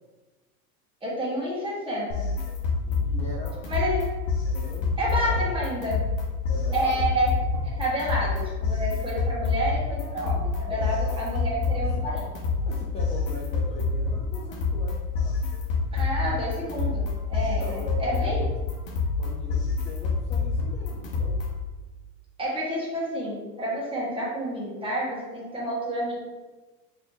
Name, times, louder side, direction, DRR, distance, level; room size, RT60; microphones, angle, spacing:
voice 1, 1.0-2.3 3.7-4.1 5.0-6.0 6.7-7.3 7.6-12.2 12.6-12.7 15.9-18.4 22.4-26.1, equal, 10° right, -6 dB, 1.4 m, -29 dB
sound 1, 2.1-21.7, left 4 dB, 55° left, 1.1 m, -27 dB
voice 2, 2.8-3.8 4.4-5.4 6.5-7.0 10.7-10.9 11.8-12.1 12.7-15.5 17.4-18.5 19.2-21.4, left 1 dB, 15° left, -4 dB, 0.4 m, -40 dB
4.0 x 3.1 x 2.7 m, 1.2 s
hypercardioid pair, 100°, 48 cm